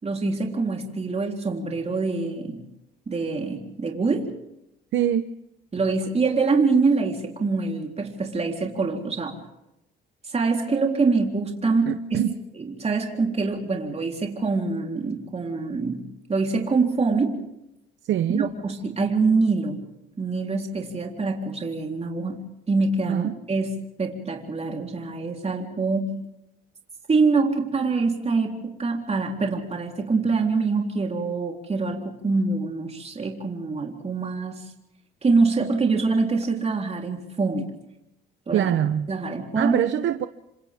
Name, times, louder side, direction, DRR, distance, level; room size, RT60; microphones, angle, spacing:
voice 1, 0.0-2.6 3.1-4.3 5.7-9.4 10.3-12.3 12.6-16.0 16.3-17.5 18.3-19.8 20.2-22.4 22.7-26.2 27.1-34.7 35.2-37.7 38.5-38.7 39.1-39.8, right 4 dB, 30° right, 3.7 m, -25 dB
voice 2, 4.9-5.3 11.9-12.3 18.0-18.5 23.1-23.4 38.5-39.1 39.6-40.3, right 11 dB, 75° right, 0.9 m, -23 dB
28.0 x 26.0 x 3.6 m
cardioid pair, 90°, 20 cm